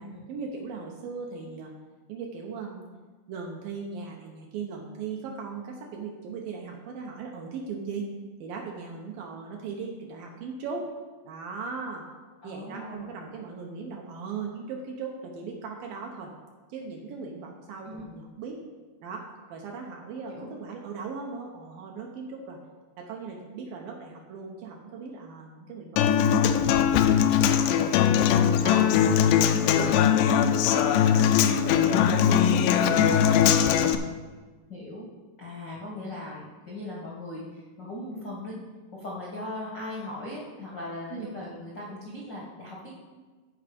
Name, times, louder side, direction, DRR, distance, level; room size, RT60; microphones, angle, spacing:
voice 1, 0.0-1.7 2.1-2.9 3.3-8.1 8.4-10.9 11.2-12.0 12.4-16.3 16.7-18.6 19.0-22.6 23.0-27.8 28.2-28.3 28.6-33.8 41.1-41.3, right 5 dB, 70° right, 0 dB, 2.3 m, -38 dB
voice 2, 12.4-13.3 17.8-18.1 20.3-20.5 28.7-29.2 34.7-35.0 35.4-38.6 38.9-42.9, left 1 dB, 60° left, -5 dB, 1.1 m, -39 dB
Human voice / Acoustic guitar, 26.0-34.0, left 9 dB, 85° left, 2.7 m, -21 dB
14.0 x 4.8 x 5.2 m, 1.3 s
omnidirectional pair, 4.8 m